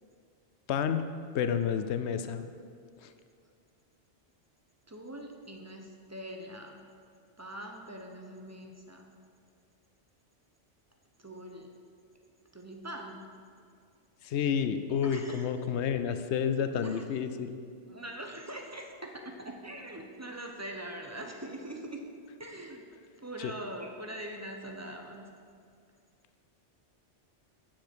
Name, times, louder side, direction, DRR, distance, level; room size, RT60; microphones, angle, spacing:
voice 1, 0.7-1.0 1.3-2.5 3.0-3.1 14.2-17.6 23.4-23.5, left 7 dB, 70° left, 9 dB, 0.8 m, -30 dB
voice 2, 4.9-6.9 7.4-9.1 11.2-11.7 12.5-13.3 15.0-15.5 16.8-17.1 17.9-22.0 22.4-22.8 23.2-25.2, right 1 dB, 15° right, 2 dB, 0.6 m, -43 dB
8.9 x 7.4 x 4.5 m, 2.2 s
omnidirectional pair, 1.2 m